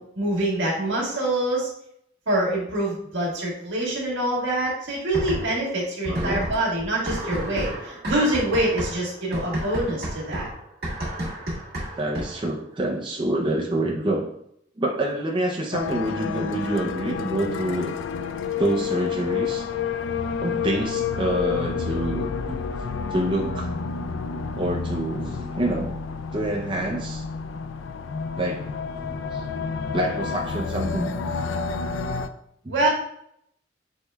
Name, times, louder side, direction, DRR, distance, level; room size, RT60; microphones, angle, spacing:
voice 1, 0.0-1.7 2.3-10.5 32.7-32.9, right 1 dB, 75° right, -3 dB, 1.6 m, -25 dB
sound 1, 5.1-5.7 6.0-12.5, right 1 dB, 55° right, 1.7 m, -31 dB
voice 2, 6.1-6.5 12.0-14.3 14.8-17.9 18.6-19.7 20.4-22.6 23.1-23.7 24.5-25.9 26.3-27.2 28.4-28.6 29.0-29.4 29.9-31.2 32.6-32.7, right 1 dB, 25° right, -2 dB, 0.5 m, -27 dB
sound 2, 15.7-32.3, left 6 dB, 80° left, 0.3 m, -29 dB
6.3 x 3.3 x 2.3 m, 0.72 s
head